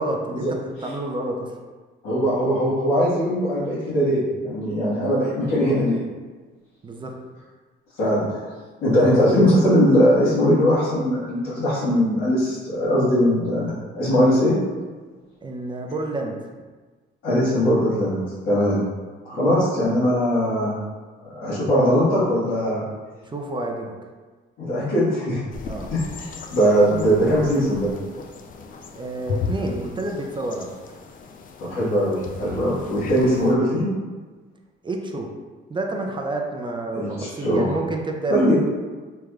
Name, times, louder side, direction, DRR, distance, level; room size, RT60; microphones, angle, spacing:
voice 1, 0.0-1.5 6.8-7.2 15.4-16.4 19.3-19.6 23.3-23.9 25.6-25.9 28.9-30.7 34.8-35.3 35.7-38.7, right 2 dB, 25° right, 2 dB, 0.4 m, -29 dB
voice 2, 2.0-6.0 8.0-8.4 8.8-14.5 17.2-18.2 18.4-18.8 19.2-20.8 21.3-22.8 24.6-25.4 25.9-27.9 31.6-33.9 36.9-37.7 38.3-38.5, equal, 80° left, -13 dB, 1.5 m, -20 dB
sound 1, 25.5-33.5, left 4 dB, 45° left, 0.4 m, -36 dB
3.4 x 3.1 x 2.3 m, 1.4 s
cardioid pair, 90°, 20 cm